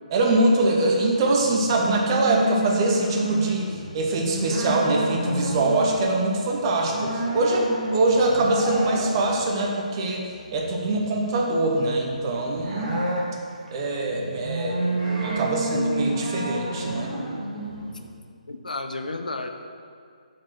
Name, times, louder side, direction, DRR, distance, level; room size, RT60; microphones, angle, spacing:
voice 1, 0.1-10.2 10.5-13.0 13.7-14.8 15.2-17.1, right 2 dB, 35° right, 0 dB, 0.9 m, -23 dB
sound 1, 0.8-18.1, right 1 dB, 75° right, 1.6 m, -30 dB
voice 2, 18.5-19.5, left 2 dB, 85° left, 6 dB, 0.6 m, -32 dB
4.7 x 4.4 x 5.9 m, 2.2 s
figure-of-eight pair, 145°, 4 cm